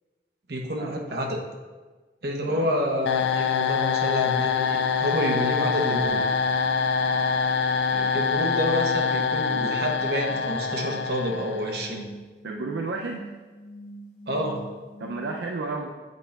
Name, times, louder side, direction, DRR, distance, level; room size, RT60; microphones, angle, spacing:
voice 1, 0.5-1.4 2.2-6.3 8.1-12.0 14.3-14.7, equal, 70° right, 1 dB, 0.9 m, -28 dB
sound 1, 3.0-12.0, left 5 dB, 80° left, 0.3 m, -25 dB
voice 2, 7.8-8.2 12.4-13.4 15.0-16.0, right 3 dB, 85° right, 1 dB, 0.4 m, -33 dB
sound 2, 9.5-15.4, right 1 dB, 45° left, 2.0 m, -44 dB
8.0 x 4.1 x 3.4 m, 1.3 s
head